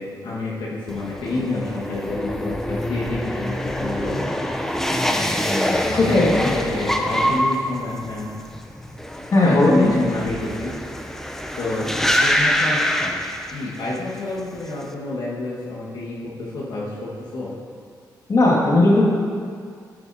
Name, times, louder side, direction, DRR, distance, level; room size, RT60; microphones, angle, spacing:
voice 1, 0.0-4.4 5.8-8.4 9.4-10.7 11.6-11.9 12.2-12.8 13.5-17.5, left 2 dB, 80° left, -6 dB, 1.6 m, -28 dB
sound 1, 0.9-14.0 14.3-14.8, equal, 5° left, 0.6 m, -25 dB
voice 2, 5.9-6.3 9.3-9.9 18.3-19.1, left 2 dB, 45° left, -4 dB, 2.0 m, -16 dB
9.7 x 9.2 x 2.8 m, 2.2 s
cardioid pair, 90°, 8 cm